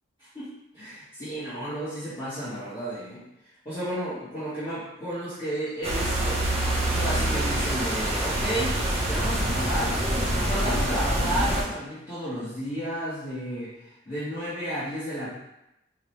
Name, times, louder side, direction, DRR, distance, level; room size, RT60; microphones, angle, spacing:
voice 1, 0.7-3.2 3.6-8.8 9.1-10.0 10.4-15.3, equal, 25° left, -14 dB, 1.2 m, -32 dB
sound 1, 5.8-11.6, right 1 dB, 35° right, 0.7 m, -26 dB
4.7 x 2.3 x 3.1 m, 0.88 s
head